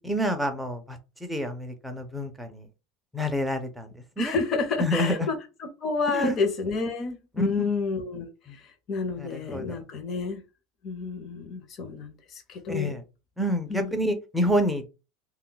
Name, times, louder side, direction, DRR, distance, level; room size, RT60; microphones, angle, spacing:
voice 1, 0.0-2.7 3.1-4.3 4.8-5.3 6.1-6.4 7.4-7.7 9.2-9.8 12.7-13.0 13.4-14.9, equal, 5° right, 6 dB, 0.5 m, -28 dB
voice 2, 4.2-10.4 10.8-13.0 13.7-13.9, left 4 dB, 35° left, 6 dB, 0.7 m, -30 dB
2.2 x 2.1 x 3.8 m, 0.29 s
supercardioid pair, 155°, 0 cm